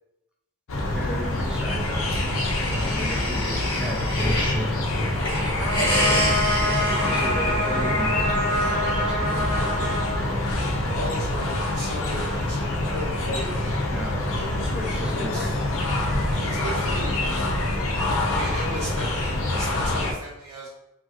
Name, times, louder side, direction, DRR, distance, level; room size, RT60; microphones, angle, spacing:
sound 1, 0.7-20.1, left 1 dB, 65° left, 0.5 m, -26 dB
voice 1, 0.9-2.2 2.6-4.9 5.3-6.8 7.0-9.9 13.9-14.2 14.6-15.6, equal, 5° right, -1 dB, 0.4 m, -36 dB
sound 2, 1.9-4.6 5.0-7.9, left 1 dB, 25° left, 1.1 m, -29 dB
Trumpet, 5.6-10.9, equal, 55° right, 0.8 m, -27 dB
voice 2, 10.9-13.4 15.0-15.6 16.4-17.8 18.3-19.2 19.6-20.7, equal, 85° right, -5 dB, 0.7 m, -36 dB
3.0 x 2.7 x 2.4 m, 0.89 s
head